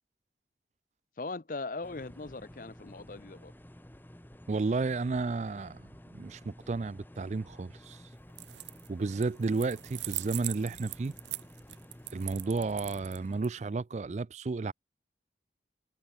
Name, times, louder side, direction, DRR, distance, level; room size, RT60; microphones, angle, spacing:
voice 1, 1.2-3.5, left 3 dB, 50° left, 0.7 m, -39 dB
sound 1, 1.8-13.4, equal, 10° left, 1.4 m, -52 dB
voice 2, 4.5-8.0 8.9-11.1 12.1-14.7, right 3 dB, 40° right, 0.4 m, -32 dB
sound 2, 8.3-8.9 9.2-13.5, right 17 dB, 85° right, 0.7 m, -40 dB
head